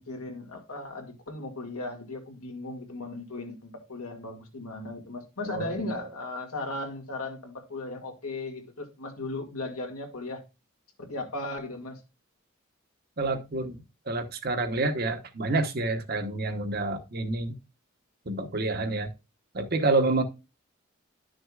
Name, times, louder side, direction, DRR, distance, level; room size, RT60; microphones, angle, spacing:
voice 1, 0.0-10.4 11.0-12.0, left 2 dB, 85° left, 2.1 m, -37 dB
voice 2, 13.2-13.8 14.1-17.5 18.3-19.1 19.5-20.2, right 2 dB, 45° right, 1.0 m, -28 dB
11.5 x 6.3 x 2.4 m
head